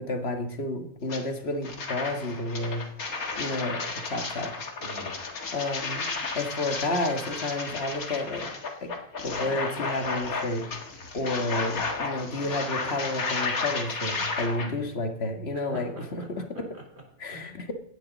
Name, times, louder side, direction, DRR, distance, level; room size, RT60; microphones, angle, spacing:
voice 1, 0.0-2.8 3.4-4.5 5.5-6.1 6.3-8.5 8.8-8.9 9.2-10.7 11.1-16.2 17.2-17.7, left 2 dB, 45° left, 5 dB, 1.8 m, -31 dB
sound 1, 1.1-1.2 1.6-14.7, left 4 dB, 80° left, 2.3 m, -33 dB
voice 2, 4.8-5.1 14.5-14.8 15.5-17.7, right 1 dB, 45° right, 1 dB, 3.9 m, -44 dB
16.5 x 11.5 x 4.0 m, 0.76 s
omnidirectional pair, 1.5 m